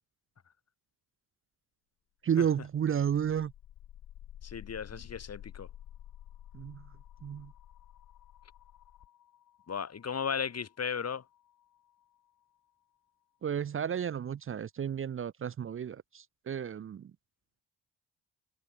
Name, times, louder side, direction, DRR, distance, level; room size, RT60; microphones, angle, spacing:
voice 1, 2.2-3.5 6.5-6.8 7.2-7.5 13.4-17.1, right 8 dB, 40° right, 0.6 m, -32 dB
sound 1, 2.7-12.4, left 12 dB, 85° left, 4.9 m, -52 dB
voice 2, 4.4-5.7 9.7-11.2, left 6 dB, 50° left, 5.4 m, -35 dB
cardioid pair, 80°, 32 cm